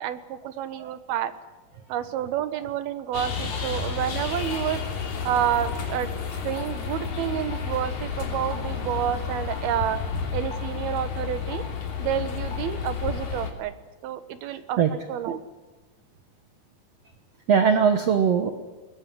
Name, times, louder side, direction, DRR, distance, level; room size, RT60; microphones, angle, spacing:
voice 1, 0.0-1.3 1.9-4.8 5.2-6.1 6.4-10.0 10.3-11.6 12.0-13.7 14.0-15.4, right 10 dB, 75° right, 12 dB, 3.1 m, -29 dB
sound 1, 3.1-13.5, left 6 dB, 50° left, 4.1 m, -31 dB
voice 2, 14.5-14.9 17.5-18.5, right 7 dB, 60° right, 8 dB, 1.8 m, -21 dB
22.0 x 20.5 x 9.9 m, 1.2 s
omnidirectional pair, 4.5 m